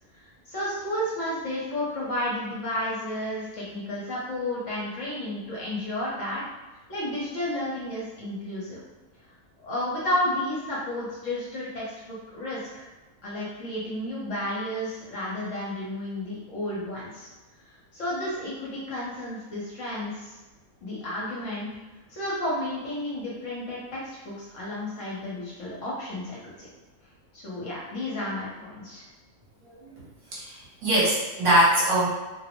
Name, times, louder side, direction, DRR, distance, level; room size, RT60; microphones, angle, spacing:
voice 1, 0.5-6.4 6.9-8.8 9.6-12.9 13.2-17.3 17.9-20.4 20.8-21.7 22.1-26.7 27.3-29.0, left 1 dB, 60° left, -6 dB, 1.1 m, -32 dB
voice 2, 30.3-32.1, right 1 dB, 60° right, -7 dB, 1.1 m, -22 dB
2.6 x 2.0 x 2.9 m, 1.2 s
omnidirectional pair, 1.5 m